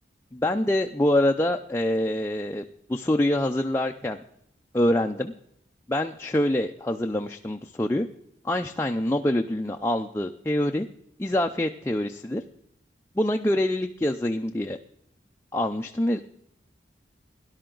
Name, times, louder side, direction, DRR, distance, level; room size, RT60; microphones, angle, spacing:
voice 1, 0.3-2.6 2.9-4.2 4.7-5.3 5.9-8.1 8.4-10.9 11.2-12.4 13.2-14.8 15.5-16.2, left 1 dB, 15° left, 4 dB, 0.4 m, -25 dB
18.0 x 11.5 x 3.9 m, 0.74 s
head